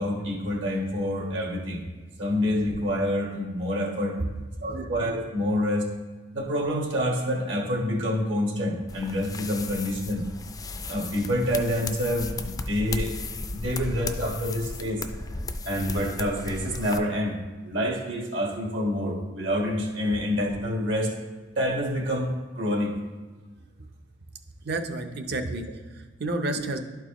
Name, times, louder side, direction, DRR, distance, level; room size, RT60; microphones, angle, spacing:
voice 1, 0.0-1.9 2.2-4.2 4.6-5.9 6.3-10.2 10.9-13.1 13.5-15.0 15.6-21.1 21.5-22.9, equal, 75° right, 0 dB, 1.5 m, -27 dB
sound 1, 8.9-17.0, left 3 dB, 20° left, 0.3 m, -35 dB
voice 2, 24.6-26.8, right 2 dB, 60° right, 6 dB, 0.7 m, -30 dB
11.5 x 4.6 x 3.0 m, 1.3 s
head